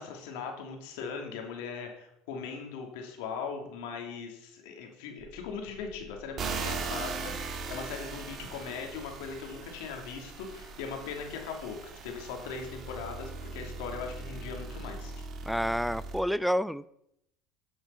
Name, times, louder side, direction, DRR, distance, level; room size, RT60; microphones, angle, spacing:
voice 1, 0.0-15.3, left 5 dB, 80° left, 2 dB, 2.8 m, -40 dB
sound 1, 5.2-14.9, right 1 dB, 20° right, 5.3 m, -54 dB
sound 2, 6.4-16.2, right 4 dB, 40° right, 1.6 m, -39 dB
voice 2, 15.5-16.9, equal, ahead, 16 dB, 0.4 m, -29 dB
10.5 x 7.2 x 5.8 m, 0.77 s
supercardioid pair, 120°, 0 cm